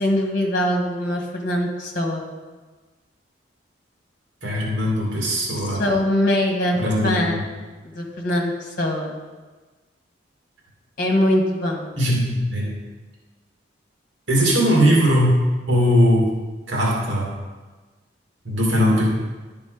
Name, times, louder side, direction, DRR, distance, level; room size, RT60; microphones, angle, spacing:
voice 1, 0.0-2.3 5.7-6.8 7.0-7.4 7.8-9.2 11.0-11.9, left 1 dB, 45° left, 1 dB, 1.5 m, -22 dB
voice 2, 4.4-5.8 6.8-7.1 12.0-12.7 14.3-15.4 15.7-16.3 16.7-17.3 18.4-19.0, equal, 80° right, -4 dB, 2.3 m, -19 dB
11.0 x 5.3 x 4.9 m, 1.3 s
head